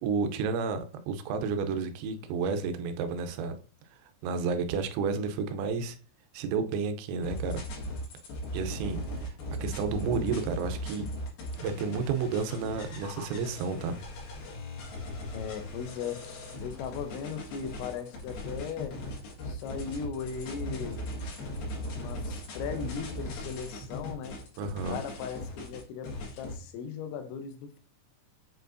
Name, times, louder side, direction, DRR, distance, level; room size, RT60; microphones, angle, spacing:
voice 1, 0.0-3.6 4.2-6.0 6.3-7.6 8.5-9.3 9.6-11.1 11.6-14.0 24.6-25.0, right 5 dB, 85° right, 3.0 m, -31 dB
sound 1, 7.2-26.5, left 1 dB, 60° left, 3.4 m, -38 dB
voice 2, 15.3-19.0 19.5-21.0 21.9-24.4 24.8-27.8, left 6 dB, 90° left, 3.1 m, -38 dB
8.0 x 4.6 x 2.6 m
omnidirectional pair, 5.2 m